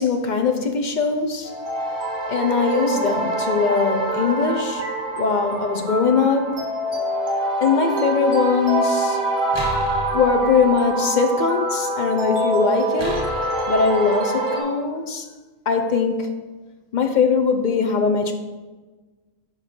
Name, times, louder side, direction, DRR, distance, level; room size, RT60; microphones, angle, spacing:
voice 1, 0.0-1.5 2.3-4.8 5.2-6.6 7.6-9.2 10.1-13.2 13.7-15.3 15.7-16.3 16.9-18.3, left 5 dB, 45° left, 6 dB, 0.6 m, -21 dB
sound 1, 1.4-14.6, right 1 dB, 60° right, 2.2 m, -25 dB
sound 2, 9.5-10.7 13.0-13.8, equal, 20° right, 1.7 m, -32 dB
5.5 x 4.9 x 5.2 m, 1.3 s
omnidirectional pair, 1.3 m